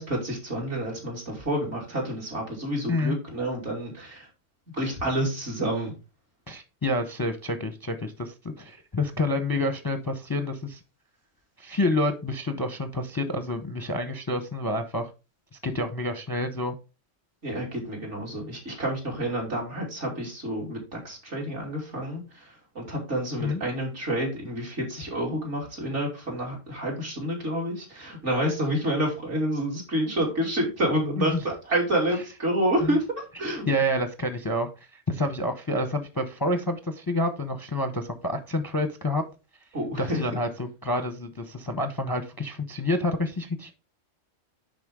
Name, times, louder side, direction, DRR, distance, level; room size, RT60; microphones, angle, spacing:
voice 1, 0.0-4.3 4.7-5.9 17.4-33.6 39.7-40.2, right 1 dB, 65° right, -2 dB, 3.1 m, -29 dB
voice 2, 6.5-10.8 11.6-15.1 15.6-16.7 23.4-23.6 31.2-31.4 32.8-33.0 33.7-39.2 40.0-43.7, left 1 dB, 25° left, 8 dB, 0.6 m, -28 dB
9.9 x 3.9 x 3.6 m, 0.30 s
omnidirectional pair, 1.3 m